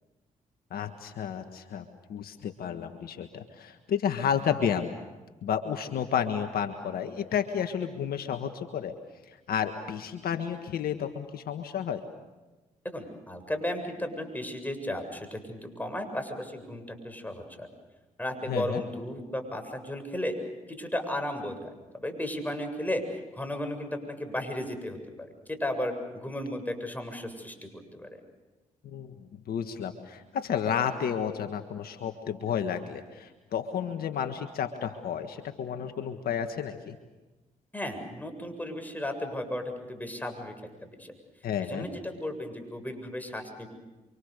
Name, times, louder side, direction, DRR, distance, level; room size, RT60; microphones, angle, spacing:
voice 1, 0.7-4.9 5.4-8.9 9.2-12.0 18.5-18.8 28.8-37.0 41.4-41.9, left 8 dB, 70° left, 7 dB, 1.6 m, -31 dB
voice 2, 12.9-17.7 18.2-20.3 20.7-28.2 37.7-40.5 40.9-41.1 41.6-43.7, left 1 dB, 10° left, 5 dB, 7.6 m, -35 dB
29.0 x 25.5 x 6.8 m, 1.2 s
supercardioid pair, 50°, 16 cm